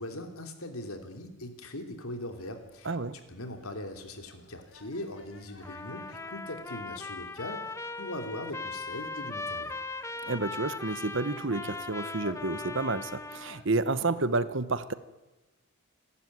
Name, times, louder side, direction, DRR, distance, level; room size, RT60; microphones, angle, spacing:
voice 1, 0.0-2.9 3.3-9.7, left 1 dB, 75° left, 6 dB, 3.2 m, -40 dB
sound 1, 2.4-13.7, left 3 dB, 60° left, 3.3 m, -56 dB
voice 2, 2.8-3.2 10.2-14.9, right 3 dB, 55° right, 14 dB, 1.1 m, -30 dB
Trumpet, 5.6-13.7, left 3 dB, 15° left, 0.7 m, -39 dB
28.0 x 12.5 x 9.7 m, 1.1 s
head